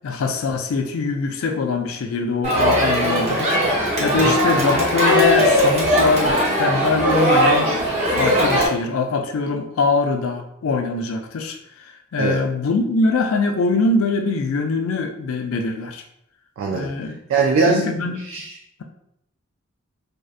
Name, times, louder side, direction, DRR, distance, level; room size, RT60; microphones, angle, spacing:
voice 1, 0.0-16.0 16.7-17.1 17.7-18.3, left 3 dB, 75° left, 5 dB, 0.4 m, -23 dB
Crowd, 2.4-8.7, equal, 30° right, 0.7 m, -19 dB
voice 2, 16.6-16.9 17.3-17.8 18.3-18.5, right 4 dB, 70° right, 0 dB, 0.3 m, -20 dB
2.6 x 2.1 x 2.3 m, 0.76 s
head